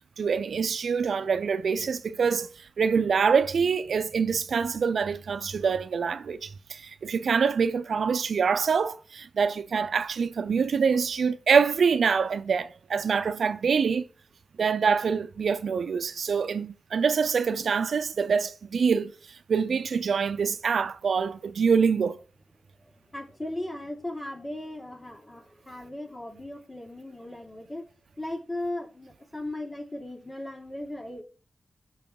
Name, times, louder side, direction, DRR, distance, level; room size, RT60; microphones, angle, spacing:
voice 1, 0.2-14.1 14.6-22.2, right 6 dB, 85° right, 0.6 m, -25 dB
voice 2, 22.9-27.8 28.2-31.2, left 1 dB, 20° left, 2.2 m, -37 dB
6.9 x 5.7 x 3.8 m
wide cardioid pair, 100°, 0 cm